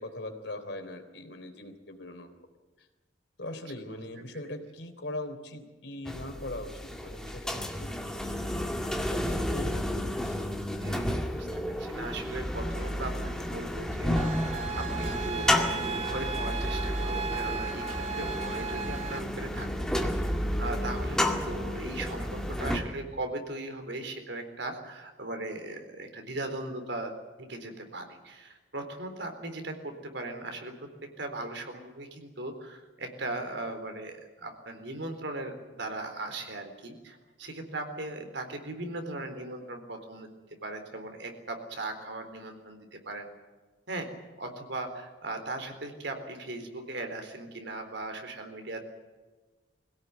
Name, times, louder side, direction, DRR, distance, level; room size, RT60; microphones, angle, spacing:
voice 1, 0.0-2.3 3.4-6.7 7.0-8.5 9.1-10.4, left 1 dB, 65° left, 5 dB, 3.5 m, -40 dB
sound 1, 6.1-22.8, left 1 dB, 5° left, 2.0 m, -31 dB
voice 2, 10.8-19.7 20.0-20.3 20.6-27.1 27.4-30.9 31.2-40.3 40.6-43.3 43.9-44.1 44.4-48.9, right 2 dB, 65° right, 6 dB, 3.9 m, -38 dB
sound 2, 14.2-19.2, right 5 dB, 35° right, 1.8 m, -36 dB
22.5 x 17.0 x 9.5 m, 1.3 s
head